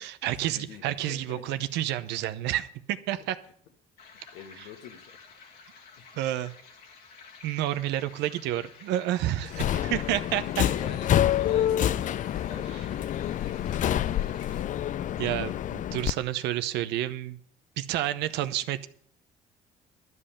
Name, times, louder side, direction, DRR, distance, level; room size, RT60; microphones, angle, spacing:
voice 1, 0.0-3.4 6.2-6.5 7.4-10.6 12.7-12.8 15.2-17.4 17.8-18.9, right 13 dB, 80° right, 12 dB, 0.8 m, -30 dB
voice 2, 0.5-1.5 4.1-5.2 6.0-6.1 9.4-14.6, left 7 dB, 90° left, 6 dB, 1.4 m, -45 dB
sound 1, 4.0-14.6, left 5 dB, 65° left, 2.1 m, -51 dB
Subway metro underground, 9.5-16.1, left 11 dB, 50° left, 0.4 m, -27 dB
12.5 x 5.5 x 8.5 m, 0.62 s
supercardioid pair, 70°, 18 cm